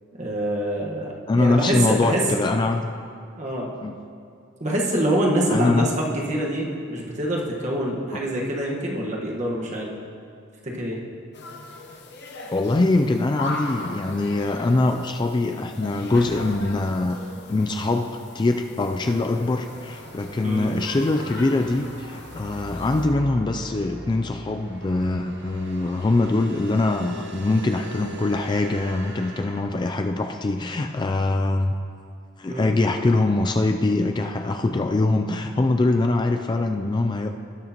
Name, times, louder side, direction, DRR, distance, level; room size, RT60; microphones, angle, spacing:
voice 1, 0.2-2.2 3.4-3.7 4.6-9.9 10.6-11.0 20.4-20.7 32.5-32.7, right 1 dB, 35° right, -2 dB, 1.3 m, -25 dB
voice 2, 1.3-2.8 3.8-3.9 5.5-5.9 8.1-8.2 12.5-17.2 17.5-31.7 32.4-37.3, left 2 dB, 20° left, 5 dB, 0.3 m, -23 dB
sound 1, 11.3-23.1, left 2 dB, 55° left, 1.1 m, -39 dB
sound 2, 19.2-29.6, equal, 60° right, 1.2 m, -41 dB
18.5 x 6.5 x 2.9 m, 2.3 s
head